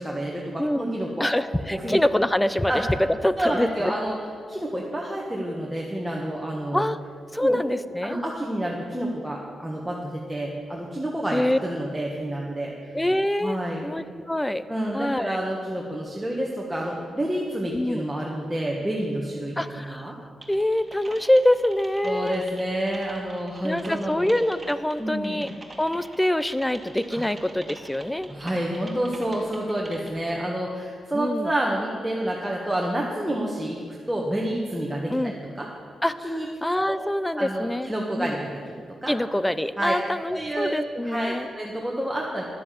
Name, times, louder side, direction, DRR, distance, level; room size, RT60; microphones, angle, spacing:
voice 1, 0.0-1.3 1.7-2.0 2.7-2.8 3.4-4.2 4.5-6.8 7.4-7.6 8.0-13.0 13.4-13.9 14.7-19.6 19.9-20.1 22.0-24.3 25.0-25.5 27.1-27.2 28.3-35.7 36.2-36.5 36.7-37.0 37.4-38.7 39.0-39.1 39.8-39.9 40.3-40.8 41.0-42.4, right 1 dB, 5° right, -3 dB, 1.6 m, -29 dB
voice 2, 1.2-2.7 3.2-3.9 6.7-7.0 7.3-8.2 11.3-11.6 12.9-14.6 14.9-15.4 17.7-18.1 19.6-20.1 20.5-22.4 23.6-25.5 25.8-28.3 31.1-31.5 35.1-35.3 36.0-37.9 38.2-38.4 39.1-41.5, left 1 dB, 10° left, 14 dB, 0.5 m, -25 dB
Typing, 20.4-30.3, right 2 dB, 30° right, 2.0 m, -45 dB
10.5 x 7.6 x 7.7 m, 2.1 s
cardioid pair, 60°, 0 cm